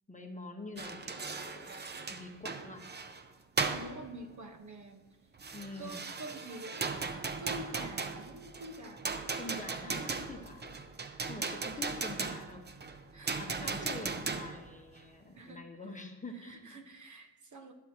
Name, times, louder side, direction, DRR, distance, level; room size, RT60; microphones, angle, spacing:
voice 1, 0.1-1.7 2.1-2.9 5.5-6.0 9.4-10.7 11.3-12.6 13.4-16.8, left 2 dB, 15° left, 3 dB, 1.3 m, -46 dB
sound 1, 0.8-3.2 3.6-4.1 5.4-14.7, right 4 dB, 25° right, 0.7 m, -37 dB
voice 2, 3.6-5.0 5.8-6.9 7.4-10.2 11.8-12.0 13.1-13.9 15.3-15.6 15.9-16.0 16.3-17.7, right 1 dB, 40° right, 6 dB, 1.3 m, -47 dB
12.0 x 11.5 x 2.9 m, 1.1 s
cardioid pair, 100°, 44 cm